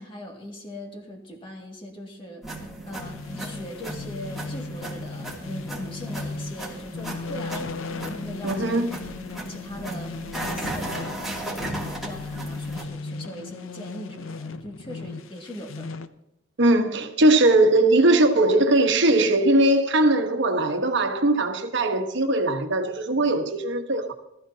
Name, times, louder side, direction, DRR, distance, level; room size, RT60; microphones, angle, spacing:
voice 1, 0.0-2.4 2.9-8.9 9.3-10.1 10.4-15.9, left 1 dB, 25° left, 2.3 m, -40 dB
sound 1, 2.4-12.8, right 1 dB, ahead, 2.6 m, -36 dB
sound 2, 3.0-16.1, left 3 dB, 90° left, 0.7 m, -37 dB
voice 2, 8.4-9.0 16.6-24.1, right 2 dB, 65° right, 1.2 m, -20 dB
19.5 x 13.5 x 2.8 m
head